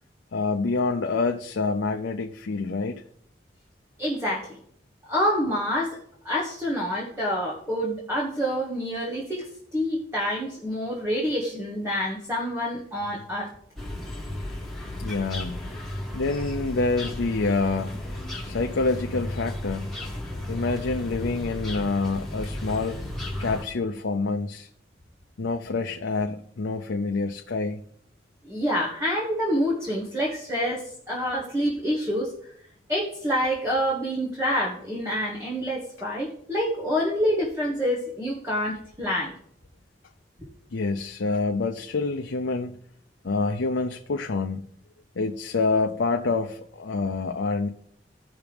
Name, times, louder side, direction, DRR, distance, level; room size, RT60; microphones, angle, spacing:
voice 1, 0.3-3.0 15.0-15.6 16.1-17.9 18.4-19.9 20.5-23.0 23.4-24.7 25.4-27.9 40.7-42.8 43.2-44.6 45.2-47.7, left 3 dB, 85° left, 0.6 m, -27 dB
voice 2, 4.0-4.6 5.1-6.0 6.2-13.5 28.4-32.3 32.9-39.3, equal, 15° right, 1.5 m, -27 dB
sound 1, 13.8-23.6, left 1 dB, ahead, 1.7 m, -34 dB
16.0 x 5.9 x 3.5 m
head